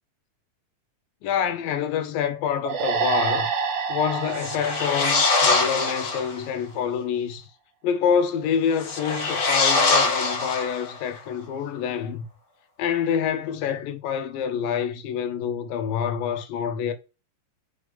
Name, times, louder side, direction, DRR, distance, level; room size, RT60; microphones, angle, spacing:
voice 1, 1.2-3.5 3.9-7.5 7.8-12.3 12.8-16.9, left 8 dB, 85° left, 2.7 m, -26 dB
sound 1, 2.7-6.1, right 5 dB, 65° right, 1.4 m, -28 dB
sound 2, 4.3-6.4 8.8-11.1, left 3 dB, 60° left, 1.0 m, -23 dB
5.5 x 5.0 x 5.1 m
omnidirectional pair, 4.0 m